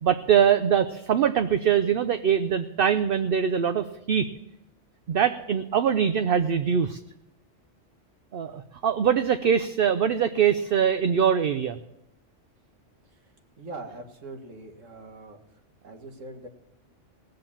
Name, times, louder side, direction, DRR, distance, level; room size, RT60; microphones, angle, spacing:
voice 1, 0.0-4.3 5.1-7.0 8.3-11.8, right 8 dB, 55° right, 9 dB, 0.7 m, -23 dB
voice 2, 13.6-15.4 15.8-16.5, right 2 dB, 85° right, 4 dB, 2.0 m, -42 dB
18.0 x 7.7 x 7.3 m, 0.87 s
omnidirectional pair, 1.3 m